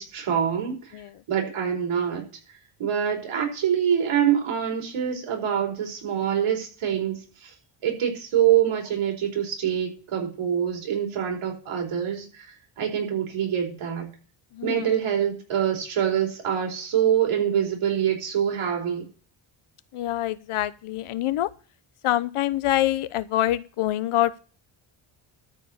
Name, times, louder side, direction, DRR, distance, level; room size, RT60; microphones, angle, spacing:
voice 1, 0.0-1.0 1.3-2.3 2.8-7.5 7.8-14.1 14.6-19.0, right 9 dB, 90° right, 4.8 m, -25 dB
voice 2, 14.5-14.9 19.9-21.5 22.0-24.4, left 14 dB, 85° left, 0.9 m, -25 dB
13.0 x 4.7 x 8.5 m
wide cardioid pair, 135°, 49 cm